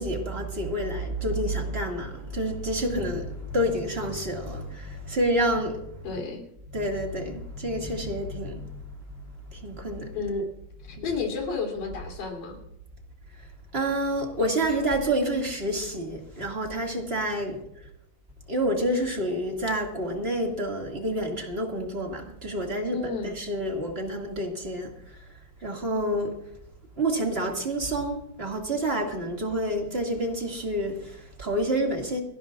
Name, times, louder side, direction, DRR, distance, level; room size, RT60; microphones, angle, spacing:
voice 1, 0.0-6.2 6.7-8.8 9.5-10.1 10.9-11.2 13.7-17.6 18.5-25.2 25.6-26.3 27.0-32.2, right 1 dB, 20° right, 1.8 m, -28 dB
voice 2, 6.0-6.5 10.1-10.5 10.8-12.6 22.9-23.3, left 4 dB, 80° left, 4.8 m, -31 dB
30.0 x 11.0 x 2.5 m
omnidirectional pair, 3.8 m